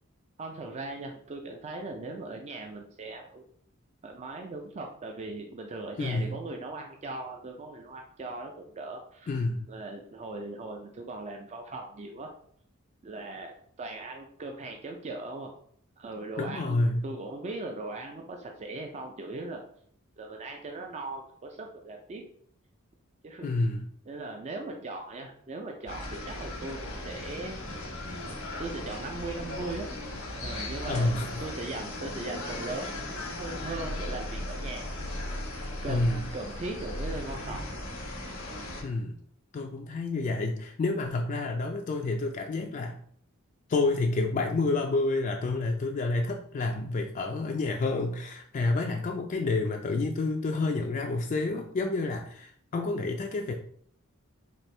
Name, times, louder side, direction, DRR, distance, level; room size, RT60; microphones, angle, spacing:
voice 1, 0.4-3.4 4.0-9.3 9.7-12.3 13.0-15.5 16.0-16.8 17.0-19.6 20.2-22.2 23.2-23.5 24.1-27.6 28.6-29.9 30.3-33.0 33.4-34.9 35.8-37.7, right 2 dB, 30° right, 2 dB, 0.4 m, -39 dB
voice 2, 6.0-6.3 9.3-9.7 16.4-17.1 23.4-23.9 30.9-31.3 35.9-36.2 38.8-39.1 39.5-43.0 43.7-53.5, left 3 dB, 40° left, 2 dB, 0.3 m, -29 dB
sound 1, 25.9-38.8, left 1 dB, 90° left, 1.0 m, -37 dB
4.2 x 2.6 x 3.2 m, 0.62 s
head